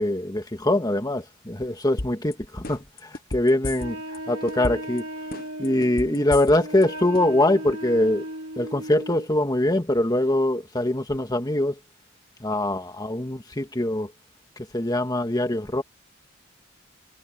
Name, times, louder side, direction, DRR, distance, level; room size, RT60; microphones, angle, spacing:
voice 1, 0.0-4.0 4.3-5.0 5.6-8.2 8.6-11.8 12.4-14.1 14.7-15.8, left 1 dB, 20° left, 1.8 m, -23 dB
sound 1, 2.0-2.3 2.6-4.2 4.5-5.0 5.3-6.8 7.1-7.2, left 2 dB, 45° left, 1.2 m, -32 dB
Wind instrument woodwind instrument, 3.7-9.3, right 1 dB, 85° right, 3.5 m, -36 dB
head